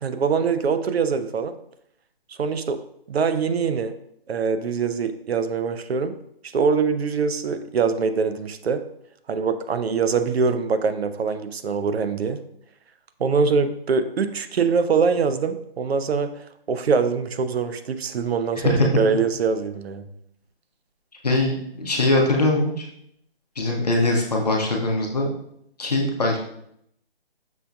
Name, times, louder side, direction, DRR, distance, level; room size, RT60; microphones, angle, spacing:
voice 1, 0.0-1.6 2.4-2.8 3.1-3.9 4.3-6.1 6.5-8.8 9.3-12.4 13.2-16.3 16.7-20.0, right 5 dB, 85° right, 10 dB, 0.5 m, -23 dB
voice 2, 21.2-22.9 23.6-25.3 25.8-26.4, left 2 dB, 40° left, 0 dB, 0.8 m, -21 dB
6.1 x 2.6 x 2.3 m, 0.72 s
hypercardioid pair, 175°, 30 cm